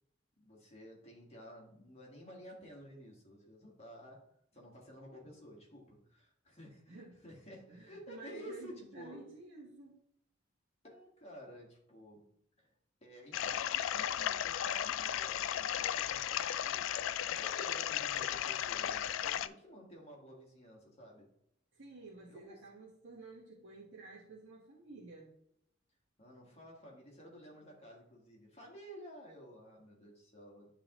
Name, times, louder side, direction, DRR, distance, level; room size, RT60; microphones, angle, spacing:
voice 1, 0.4-9.2 10.8-12.3 12.6-12.7 13.0-21.3 22.3-22.6 26.2-30.7, equal, 35° left, -2 dB, 1.7 m, -53 dB
voice 2, 7.7-10.0 21.7-25.3, right 2 dB, 70° right, -5 dB, 1.3 m, -52 dB
sound 1, 13.3-19.5, left 10 dB, 85° left, 0.3 m, -35 dB
10.5 x 3.7 x 3.0 m, 0.73 s
head